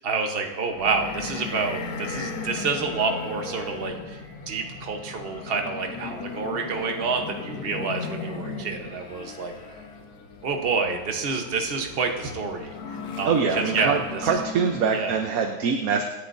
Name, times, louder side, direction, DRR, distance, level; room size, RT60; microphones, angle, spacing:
voice 1, 0.0-4.2 4.5-9.5 10.4-12.7 13.2-14.4 14.9-15.2, right 4 dB, 40° right, 3 dB, 1.2 m, -28 dB
sound 1, 0.7-15.2, left 4 dB, 75° left, 1.6 m, -37 dB
voice 2, 13.2-16.0, right 6 dB, 65° right, 4 dB, 1.3 m, -24 dB
26.0 x 10.0 x 2.7 m, 1.3 s
omnidirectional pair, 1.7 m